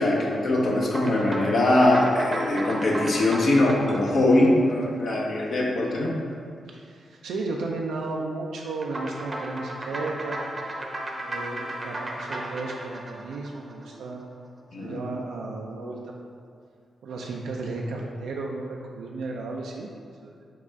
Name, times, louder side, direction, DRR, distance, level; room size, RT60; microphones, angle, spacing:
voice 1, 0.0-6.1 14.7-15.0, left 1 dB, 70° left, -3 dB, 0.7 m, -22 dB
sound 1, 0.8-5.5 8.8-14.2, right 1 dB, 35° right, 0.6 m, -35 dB
voice 2, 6.7-10.4 11.2-14.2 14.8-16.0 17.0-19.9 20.2-20.3, right 3 dB, 90° right, -1 dB, 0.3 m, -34 dB
4.7 x 2.4 x 4.5 m, 2.2 s
cardioid pair, 65°, 0 cm